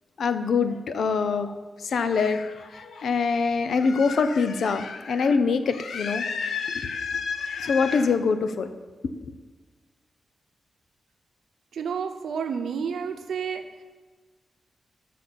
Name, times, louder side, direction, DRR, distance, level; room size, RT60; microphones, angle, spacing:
voice 1, 0.2-8.7, left 5 dB, 70° left, 10 dB, 0.6 m, -25 dB
voice 2, 11.7-13.8, right 6 dB, 85° right, 6 dB, 0.8 m, -30 dB
8.3 x 5.9 x 6.9 m, 1.4 s
wide cardioid pair, 150°, 0 cm